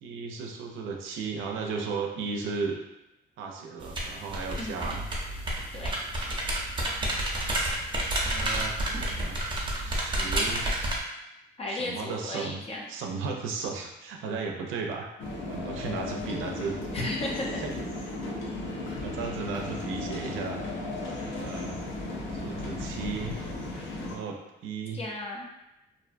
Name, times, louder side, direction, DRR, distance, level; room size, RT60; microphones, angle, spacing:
voice 1, 0.0-2.8 3.4-5.1 8.3-9.4 9.8-10.7 11.7-12.6 12.9-15.1 15.5-17.0 17.6-17.7 19.0-20.7 21.3-21.8 22.3-23.4 24.0-25.0, right 4 dB, 85° right, 2 dB, 0.4 m, -35 dB
sound 1, 3.8-11.0, right 1 dB, 25° right, 0.6 m, -30 dB
voice 2, 4.6-5.0 5.7-5.9 11.6-12.8 16.9-17.6 24.9-25.5, left 1 dB, 30° left, -1 dB, 0.6 m, -34 dB
sound 2, 15.2-24.2, left 2 dB, 70° left, 0.6 m, -35 dB
2.5 x 2.1 x 2.5 m, 0.92 s
cardioid pair, 90°, 20 cm